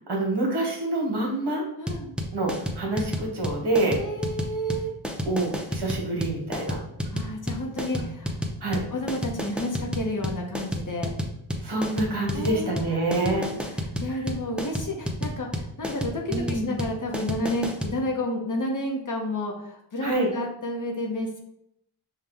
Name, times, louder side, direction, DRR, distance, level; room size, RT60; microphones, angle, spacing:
voice 1, 0.1-1.6 2.3-4.0 5.3-6.8 8.0-8.1 8.6-8.8 11.6-13.5 16.3-16.7 20.0-20.3, right 2 dB, 55° right, 0 dB, 1.4 m, -27 dB
voice 2, 1.8-2.1 4.0-4.9 7.1-8.4 8.9-11.1 12.3-21.4, left 1 dB, 40° left, 1 dB, 0.8 m, -31 dB
sound 1, 1.9-18.0, equal, ahead, 0.6 m, -30 dB
5.4 x 2.3 x 3.4 m, 0.78 s
wide cardioid pair, 80°, 48 cm